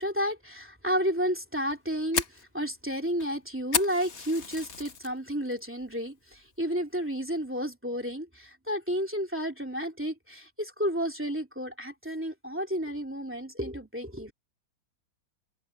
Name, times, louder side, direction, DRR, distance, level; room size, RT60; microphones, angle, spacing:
voice 1, 0.0-14.3, equal, 5° right, 2.8 m, -31 dB
Fire, 1.6-5.1 5.5-5.9 6.3-6.4 6.9-7.3, left 5 dB, 40° left, 1.4 m, -33 dB
omnidirectional pair, 2.1 m